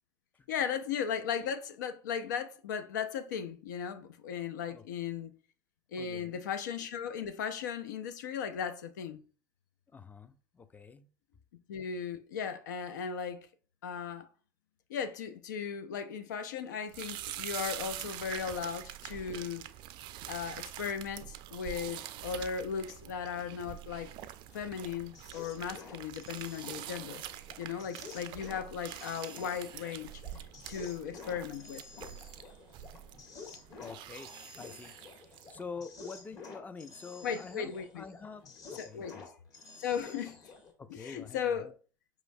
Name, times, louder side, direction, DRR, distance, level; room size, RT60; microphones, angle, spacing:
voice 1, 0.5-5.3 5.9-9.2 11.7-13.5 13.8-14.3 14.9-19.7 20.3-24.1 24.5-27.2 27.6-30.2 30.7-31.8 37.2-38.0 38.8-39.2 39.8-40.4 40.9-41.7, left 7 dB, 85° left, 0.4 m, -37 dB
voice 2, 6.0-6.4 9.9-11.1 21.2-21.3 33.8-34.3 34.6-38.4 38.7-39.3 40.3-40.4 40.8-41.7, left 5 dB, 15° left, 0.4 m, -47 dB
sound 1, 16.9-35.6, right 12 dB, 55° right, 0.3 m, -45 dB
sound 2, 24.5-40.7, left 4 dB, 40° left, 1.5 m, -51 dB
4.7 x 3.0 x 2.6 m
hypercardioid pair, 85°, 10 cm